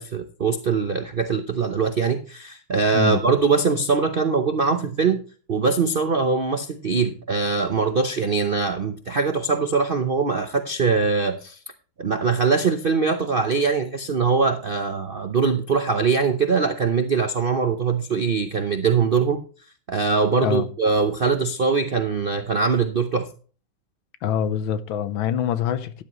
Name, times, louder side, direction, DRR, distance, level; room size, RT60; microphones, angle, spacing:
voice 1, 0.0-5.2 5.5-11.6 12.0-19.4 19.9-23.3, right 5 dB, 60° right, 0.5 m, -22 dB
voice 2, 24.2-26.0, left 9 dB, 85° left, 1.6 m, -25 dB
12.5 x 10.5 x 3.0 m
omnidirectional pair, 2.1 m